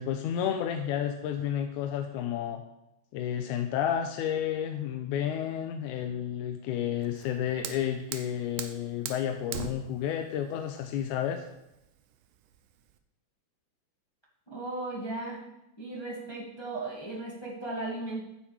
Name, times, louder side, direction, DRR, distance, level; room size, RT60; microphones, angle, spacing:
voice 1, 0.0-2.6 3.1-11.5, left 9 dB, 80° left, 5 dB, 2.0 m, -31 dB
Fire, 7.0-13.0, right 9 dB, 85° right, 2.2 m, -42 dB
voice 2, 14.5-15.4 15.8-18.2, right 2 dB, 25° left, -4 dB, 0.6 m, -36 dB
9.1 x 7.2 x 4.7 m, 0.89 s
omnidirectional pair, 3.6 m